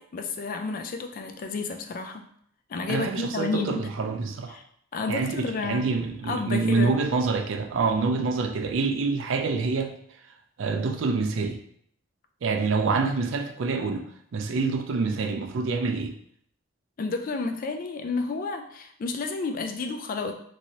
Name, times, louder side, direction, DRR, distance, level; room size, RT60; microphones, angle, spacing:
voice 1, 0.0-2.2 2.7-3.9 4.5-4.6 4.9-5.9 6.3-6.9 17.0-20.3, left 3 dB, 45° left, 5 dB, 0.3 m, -31 dB
voice 2, 2.9-4.6 5.1-9.9 10.6-11.6 12.4-14.0 14.3-16.1, right 4 dB, 75° right, 4 dB, 0.4 m, -26 dB
3.0 x 2.7 x 2.8 m, 0.66 s
head